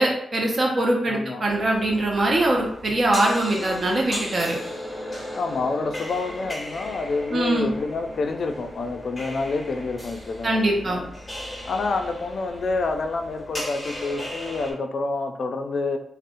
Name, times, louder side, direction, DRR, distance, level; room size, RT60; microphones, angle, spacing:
voice 1, 0.0-4.6 7.3-7.7 10.4-11.0, right 1 dB, 45° right, 0 dB, 0.4 m, -22 dB
voice 2, 1.1-1.4 5.3-11.1 11.6-16.0, left 3 dB, 60° left, 5 dB, 0.3 m, -28 dB
sound 1, 1.5-14.7, left 1 dB, 20° left, 0.8 m, -36 dB
2.7 x 2.0 x 2.5 m, 0.71 s
cardioid pair, 95°, 0 cm